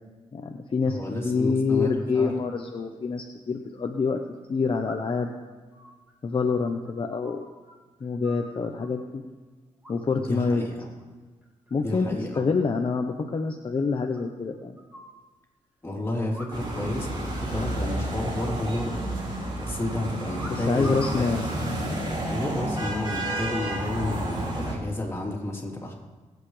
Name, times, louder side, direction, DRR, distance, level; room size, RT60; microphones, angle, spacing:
voice 1, 0.3-1.0 1.2-4.2 4.5-5.3 6.2-7.4 8.0-9.2 9.9-10.6 11.7-12.1 12.4-14.8 20.5-21.5, left 4 dB, 45° left, 3 dB, 1.0 m, -26 dB
voice 2, 0.9-2.3 10.1-10.9 11.8-12.5 15.8-19.1 19.6-21.6 22.3-25.9, left 1 dB, 20° left, -2 dB, 3.5 m, -31 dB
sound 1, 3.0-3.1 4.8-5.3 5.7-7.7 8.0-9.0 9.8-10.3 10.6-11.0 11.4-12.0 12.3-12.4 12.6-12.7 13.0-13.1 13.4-13.5 14.1-15.2 16.3-16.9 17.1-17.2 17.5-17.9 18.4-19.3 20.3-21.2 22.0-22.3, left 1 dB, 15° right, 3.5 m, -45 dB
sound 2, 16.5-24.7, right 1 dB, 40° right, 4.9 m, -30 dB
24.5 x 8.3 x 3.3 m, 1.4 s
cardioid pair, 80°, 12 cm